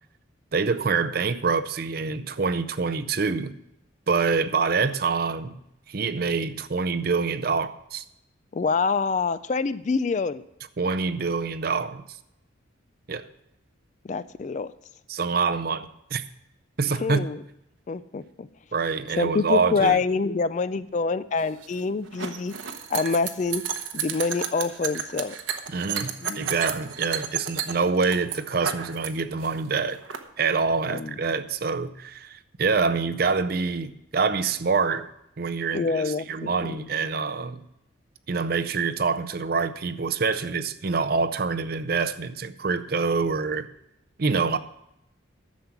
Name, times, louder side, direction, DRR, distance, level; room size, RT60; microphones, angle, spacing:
voice 1, 0.5-3.5 4.1-5.6 5.9-8.0 10.8-12.0 13.1-13.3 15.1-16.2 16.8-17.3 18.7-20.0 25.7-30.0 30.4-35.1 35.4-37.6 38.3-43.7 44.2-44.6, right 4 dB, 50° right, 11 dB, 0.5 m, -26 dB
voice 2, 8.5-10.4 14.0-14.7 17.0-17.4 17.9-18.5 19.2-22.5 22.9-23.6 23.9-25.4 26.2-26.5 30.9-31.2 35.7-36.8, left 4 dB, 35° left, 15 dB, 0.3 m, -26 dB
sound 1, 21.4-29.1 29.4-30.2, right 8 dB, 70° right, 1.0 m, -32 dB
11.5 x 7.4 x 5.8 m, 0.84 s
head